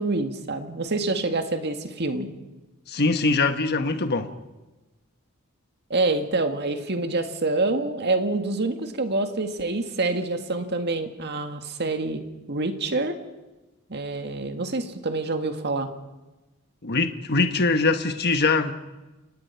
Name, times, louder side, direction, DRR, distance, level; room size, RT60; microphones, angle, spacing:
voice 1, 0.0-2.3 5.9-12.2 12.5-13.2 13.9-15.9, right 2 dB, 50° right, 6 dB, 1.9 m, -26 dB
voice 2, 2.9-4.3 16.8-18.7, left 3 dB, 50° left, 8 dB, 1.3 m, -22 dB
29.0 x 18.0 x 5.8 m, 1.1 s
head